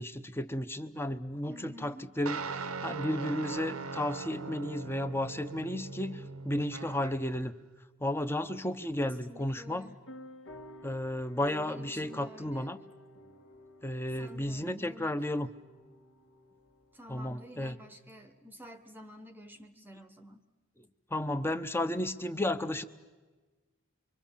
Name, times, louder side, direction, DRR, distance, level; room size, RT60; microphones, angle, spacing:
voice 1, 0.0-7.5 8.0-9.9 10.8-12.8 13.8-15.5 17.1-17.8 21.1-22.8, left 1 dB, 10° left, 10 dB, 0.9 m, -33 dB
voice 2, 1.5-2.1 9.0-10.0 11.5-12.8 14.1-15.2 16.9-20.4, equal, 10° right, 7 dB, 1.1 m, -50 dB
sound 1, 2.3-7.4, right 4 dB, 90° right, 1.1 m, -40 dB
sound 2, 10.1-18.2, left 1 dB, 60° left, 2.1 m, -52 dB
25.0 x 25.0 x 7.3 m, 1.3 s
head